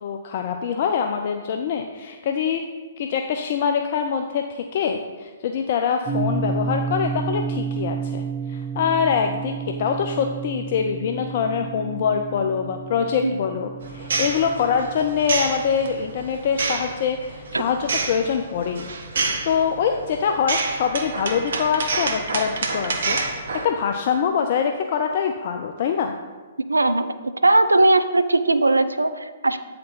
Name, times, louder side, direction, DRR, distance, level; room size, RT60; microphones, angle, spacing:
voice 1, 0.0-2.6 3.0-8.2 8.5-18.9 19.4-26.1, left 7 dB, 50° left, 5 dB, 0.4 m, -24 dB
sound 1, 6.1-16.2, right 5 dB, 20° right, 1.5 m, -31 dB
sound 2, 13.8-23.7, right 3 dB, 65° right, 0.8 m, -28 dB
voice 2, 26.7-27.1 27.4-29.6, right 2 dB, 85° right, 11 dB, 0.4 m, -18 dB
8.5 x 4.3 x 4.0 m, 1.4 s
figure-of-eight pair, 120°, 0 cm